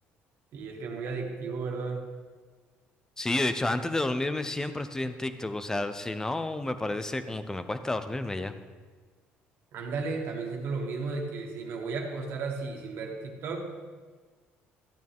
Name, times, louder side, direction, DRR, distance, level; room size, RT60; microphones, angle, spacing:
voice 1, 0.5-2.0 9.7-13.7, right 4 dB, 65° right, 1 dB, 1.8 m, -34 dB
voice 2, 3.2-8.5, left 2 dB, 15° left, 10 dB, 0.7 m, -30 dB
13.0 x 9.1 x 3.6 m, 1.5 s
cardioid pair, 100°, 4 cm